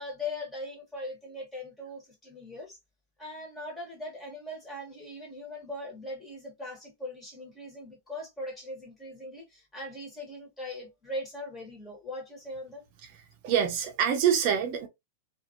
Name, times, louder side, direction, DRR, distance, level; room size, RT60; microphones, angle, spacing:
voice 1, 0.0-2.8 3.2-12.8, left 1 dB, 10° left, 1.5 m, -40 dB
voice 2, 13.4-14.9, right 8 dB, 50° right, 0.7 m, -25 dB
2.7 x 2.6 x 2.5 m
hypercardioid pair, 135°, 0 cm